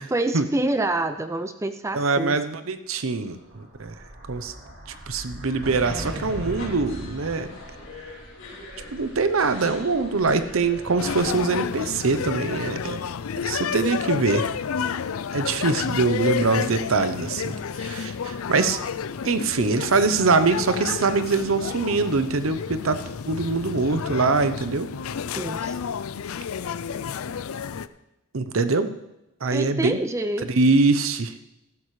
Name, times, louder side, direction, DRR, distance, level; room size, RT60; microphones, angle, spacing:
voice 1, 0.1-2.4 25.4-25.8 29.5-30.5, right 2 dB, 15° right, 9 dB, 0.4 m, -27 dB
voice 2, 1.9-3.9 4.3-4.5 5.1-7.5 8.9-13.0 13.4-14.5 15.3-18.8 19.2-23.0 23.3-24.9 28.3-28.9 29.4-30.0 30.5-31.3, right 3 dB, 75° right, 11 dB, 0.8 m, -23 dB
Explosion, 3.2-7.8, equal, 50° right, 2.1 m, -38 dB
sound 1, 5.8-11.3, left 1 dB, 70° left, 3.2 m, -41 dB
sound 2, 11.0-27.9, left 7 dB, 85° left, 0.5 m, -30 dB
14.5 x 12.5 x 3.2 m, 0.91 s
head